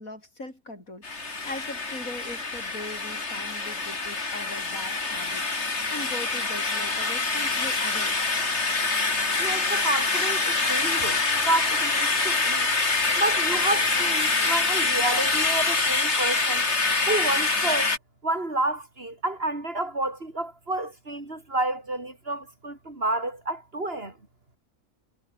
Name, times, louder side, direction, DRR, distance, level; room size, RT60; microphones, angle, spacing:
voice 1, 0.0-8.2, left 2 dB, 65° left, 7.6 m, -40 dB
sound 1, 1.0-18.0, left 3 dB, 50° left, 3.1 m, -25 dB
voice 2, 9.4-12.7 13.2-16.6 17.1-17.9 18.2-24.1, right 2 dB, 40° right, 3.6 m, -30 dB
omnidirectional pair, 1.6 m